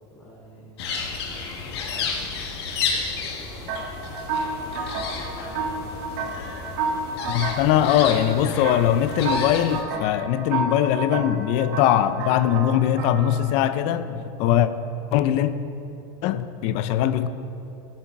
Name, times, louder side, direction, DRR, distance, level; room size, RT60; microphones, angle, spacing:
voice 1, 0.1-1.0 1.3-7.2, equal, 20° left, 3.0 m, -48 dB
sound 1, 0.8-9.8, left 5 dB, 85° left, 1.7 m, -32 dB
sound 2, 3.7-13.6, right 4 dB, 70° right, 1.8 m, -31 dB
voice 2, 7.3-14.7 15.1-15.6 16.2-17.3, left 11 dB, 55° left, 0.6 m, -21 dB
18.5 x 7.4 x 4.7 m
supercardioid pair, 145°, 13 cm